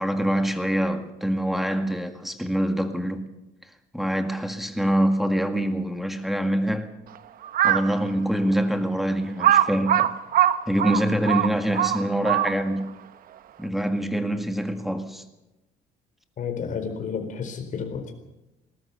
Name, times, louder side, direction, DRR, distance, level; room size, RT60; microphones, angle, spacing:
voice 1, 0.0-3.3 3.9-6.9 7.6-10.1 10.7-12.9 13.6-15.2, right 1 dB, ahead, 1.9 m, -25 dB
Crow, 7.4-7.9 8.5-8.6 9.4-12.8, right 11 dB, 60° right, 1.0 m, -21 dB
voice 2, 16.4-18.1, left 6 dB, 50° left, 4.3 m, -31 dB
20.5 x 19.0 x 6.9 m
cardioid pair, 110°, 17 cm